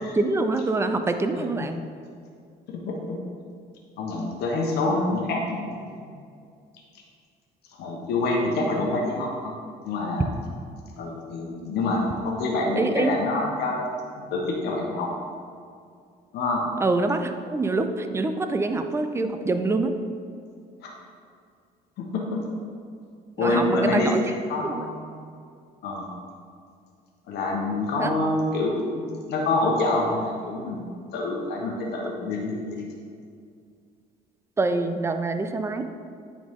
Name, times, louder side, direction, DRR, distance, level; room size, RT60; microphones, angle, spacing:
voice 1, 0.1-1.8 12.8-13.1 16.8-19.9 23.4-24.2 24.6-24.8 28.0-28.1 34.6-35.8, right 3 dB, 15° right, 8 dB, 0.4 m, -25 dB
voice 2, 1.3-1.7 2.7-3.2 4.0-6.0 7.8-9.5 9.8-10.3 11.0-13.9 14.2-15.1 16.3-16.7 20.8-20.9 22.0-22.4 23.4-24.1 24.5-25.2 25.8-26.1 27.3-30.9 31.1-32.8, left 2 dB, 75° left, -2 dB, 1.1 m, -26 dB
9.2 x 4.1 x 3.6 m, 2.3 s
cardioid pair, 110°, 17 cm